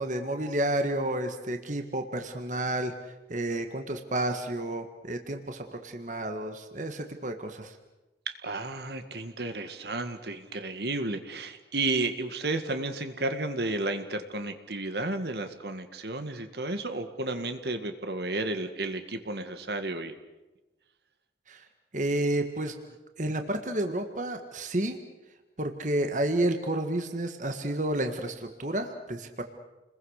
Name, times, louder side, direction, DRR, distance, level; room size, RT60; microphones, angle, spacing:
voice 1, 0.0-7.8 21.5-21.6 21.9-22.7 23.2-25.0 25.6-29.4, right 1 dB, 45° right, 6 dB, 1.7 m, -30 dB
voice 2, 8.3-20.2, right 2 dB, 65° right, 7 dB, 1.9 m, -32 dB
29.5 x 21.5 x 6.6 m, 1.1 s
head